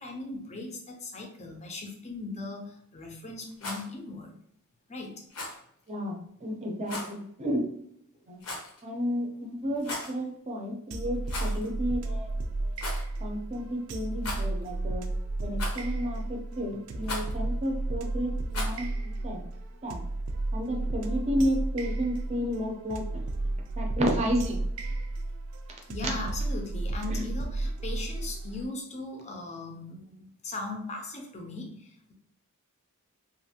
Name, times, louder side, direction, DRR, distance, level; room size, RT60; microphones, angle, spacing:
voice 1, 0.0-4.4 4.9-5.2 8.1-8.2 25.9-32.1, left 2 dB, 30° left, 2 dB, 0.5 m, -39 dB
Rattle, 3.5-3.9 5.3-5.6 6.9-7.1 8.4-8.8 9.7-10.2 11.2-11.7 11.9-12.0 12.8-13.0 14.2-14.7 15.6-16.0 17.0-17.3 18.5-18.8, left 2 dB, 80° left, 0.8 m, -37 dB
voice 2, 6.4-7.6 8.3-8.4 8.8-12.3 13.2-15.0 15.4-19.4 19.8-20.0 20.5-23.0 23.8-24.6 27.1-27.2, equal, 30° right, 1 dB, 0.6 m, -31 dB
sound 1, 10.9-28.7, right 2 dB, 80° right, 0.4 m, -33 dB
2.6 x 2.5 x 2.7 m, 0.69 s
head